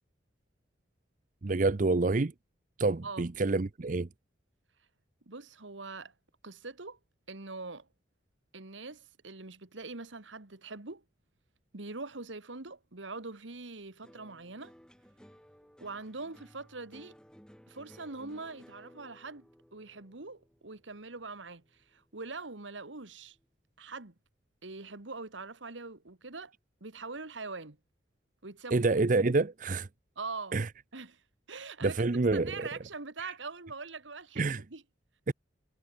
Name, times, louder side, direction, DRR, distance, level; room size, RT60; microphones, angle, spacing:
voice 1, 1.4-2.3 2.8-4.1 28.7-29.9 30.5-30.7 31.8-32.7 33.2-33.3 34.4-34.6 35.3-35.4, right 3 dB, 45° right, 0.6 m, -27 dB
voice 2, 5.3-6.1 6.4-7.0 7.3-7.9 8.5-11.0 11.7-14.7 15.8-17.2 17.7-23.4 23.8-24.1 24.6-26.5 26.8-27.8 28.4-28.8 30.2-30.6 30.9-31.2 31.5-32.0 32.3-34.8, right 3 dB, 90° right, 1.9 m, -43 dB
sound 1, 14.0-22.5 22.8-23.4, equal, 5° left, 3.9 m, -58 dB
head